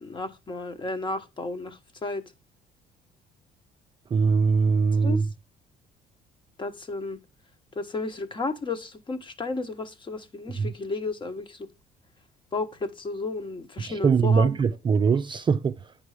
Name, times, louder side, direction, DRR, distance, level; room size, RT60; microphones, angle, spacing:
voice 1, 0.0-2.2 5.0-5.3 6.6-7.2 7.7-11.7 12.5-14.5, left 3 dB, 30° left, 1.2 m, -33 dB
voice 2, 4.1-5.3 10.6-10.7 13.8-15.8, right 5 dB, 30° right, 0.4 m, -22 dB
9.6 x 5.4 x 4.9 m
cardioid pair, 110°, 17 cm